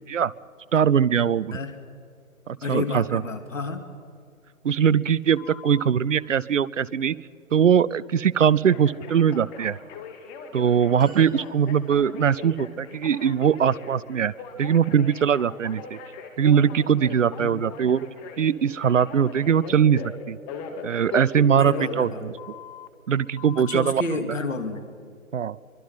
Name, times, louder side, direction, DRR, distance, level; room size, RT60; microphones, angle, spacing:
voice 1, 0.7-1.6 2.5-3.2 4.6-7.2 7.5-9.8 10.5-14.3 14.6-16.0 16.4-18.1 18.4-20.0 20.3-20.4 20.8-22.3 23.1-24.0 25.3-25.6, right 8 dB, 65° right, 22 dB, 0.7 m, -21 dB
voice 2, 2.6-3.8 17.4-17.6 21.6-22.2 23.7-24.9, left 3 dB, 70° left, 8 dB, 2.5 m, -30 dB
Telephone, 5.4-5.9 8.7-22.9 23.4-23.9, left 5 dB, 20° left, 2.2 m, -39 dB
sound 1, 11.0-12.1, left 1 dB, ahead, 4.0 m, -48 dB
24.5 x 24.0 x 5.6 m, 2.2 s
figure-of-eight pair, 140°, 40 cm